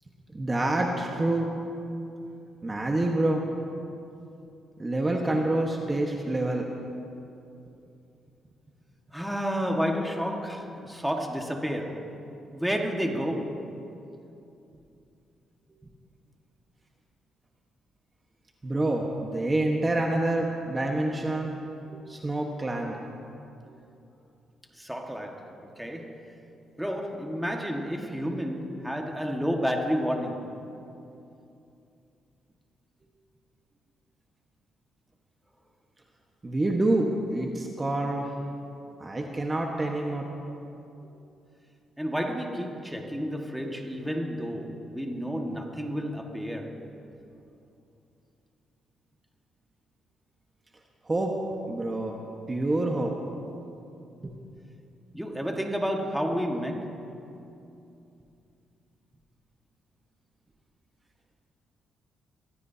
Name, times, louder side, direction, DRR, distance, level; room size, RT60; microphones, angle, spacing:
voice 1, 0.3-1.5 2.6-3.4 4.8-6.7 18.6-21.6 21.9-23.0 36.4-38.3 39.0-40.3 51.1-51.3 51.7-52.2 52.5-53.1 54.2-54.3, right 2 dB, 25° right, 1.3 m, -27 dB
voice 2, 9.1-12.2 12.5-13.8 24.8-26.3 26.8-30.7 42.0-46.9 55.1-57.1, equal, 5° right, 1.7 m, -31 dB
24.0 x 16.0 x 2.8 m
cardioid pair, 90°, 0 cm